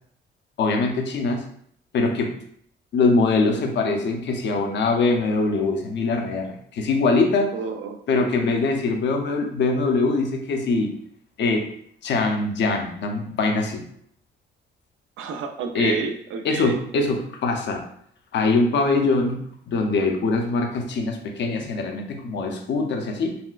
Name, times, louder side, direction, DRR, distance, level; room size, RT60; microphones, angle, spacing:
voice 1, 0.6-1.4 1.9-2.4 2.9-7.5 8.1-11.0 11.4-11.7 12.0-13.8 15.7-16.0 16.4-17.8 18.3-23.4, left 3 dB, 65° left, 3 dB, 0.7 m, -23 dB
voice 2, 7.5-8.3 15.2-16.8, right 5 dB, 85° right, 5 dB, 0.5 m, -31 dB
4.1 x 2.1 x 2.4 m, 0.64 s
cardioid pair, 90°, 20 cm